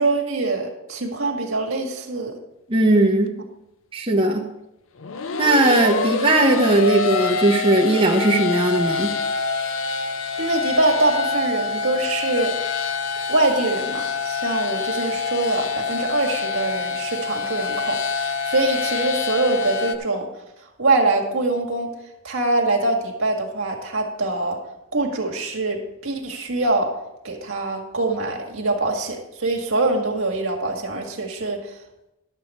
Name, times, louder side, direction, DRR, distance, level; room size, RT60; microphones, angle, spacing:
voice 1, 0.0-2.3 10.4-12.9 13.3-20.3 20.8-21.9 22.2-24.6 24.9-26.9 27.2-31.6, right 2 dB, 80° right, 1 dB, 1.8 m, -24 dB
voice 2, 2.7-3.3 3.9-4.5 5.4-9.1, right 2 dB, 25° right, -1 dB, 1.0 m, -18 dB
sound 1, 5.0-20.0, left 5 dB, 70° left, 0.6 m, -26 dB
11.5 x 7.7 x 4.3 m, 0.92 s
head